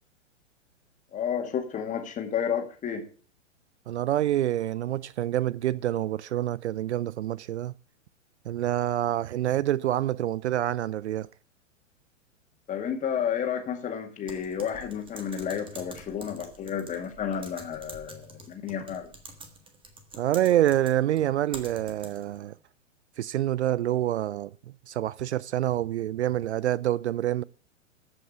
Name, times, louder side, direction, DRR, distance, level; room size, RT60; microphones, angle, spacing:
voice 1, 1.1-3.1 12.7-19.1, left 8 dB, 20° left, 2.1 m, -31 dB
voice 2, 3.9-7.7 8.5-11.3 20.2-22.6 23.2-24.5 24.9-27.4, right 12 dB, 60° right, 0.5 m, -27 dB
Typing, 14.3-22.4, right 2 dB, 15° right, 1.6 m, -47 dB
14.0 x 5.7 x 6.8 m
figure-of-eight pair, 110°, 39 cm